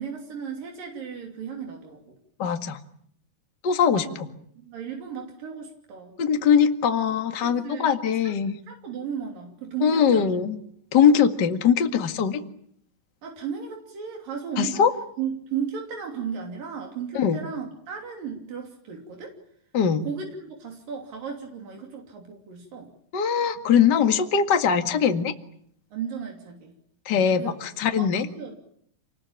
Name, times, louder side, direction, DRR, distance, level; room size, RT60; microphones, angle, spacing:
voice 1, 0.0-2.2 4.0-4.2 4.6-6.2 7.4-7.9 8.2-8.3 8.7-10.3 13.2-14.9 15.2-19.4 20.0-22.9 25.9-26.8 27.4-27.5 27.9-28.6, right 7 dB, 85° right, 2 dB, 4.8 m, -35 dB
voice 2, 2.4-2.8 3.6-4.3 6.2-8.6 9.8-10.6 10.9-12.4 14.6-14.9 17.1-17.4 19.7-20.0 23.1-25.3 27.1-28.3, left 7 dB, 35° left, 6 dB, 2.1 m, -21 dB
28.0 x 20.5 x 8.9 m, 0.68 s
omnidirectional pair, 3.9 m